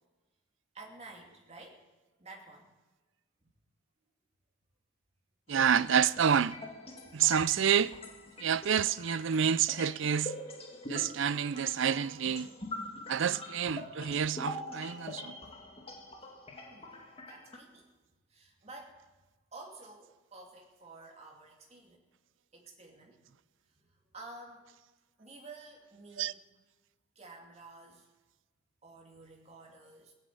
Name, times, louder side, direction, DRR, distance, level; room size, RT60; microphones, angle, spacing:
voice 1, 0.7-1.8 2.2-2.7 3.4-3.5 7.0-7.1 16.5-16.9 17.2-17.9 18.3-19.1 19.5-22.0 22.5-23.2 23.7-24.7 25.2-26.4 27.1-28.1 28.8-30.1, right 2 dB, 30° right, 2.5 m, -51 dB
sound 1, 5.5-17.6, left 2 dB, 30° left, 2.0 m, -45 dB
voice 2, 5.5-6.5 7.1-7.9 8.4-10.3 10.9-12.5 13.1-15.3 26.2-26.3, right 8 dB, 60° right, 0.4 m, -28 dB
17.0 x 8.9 x 8.5 m
head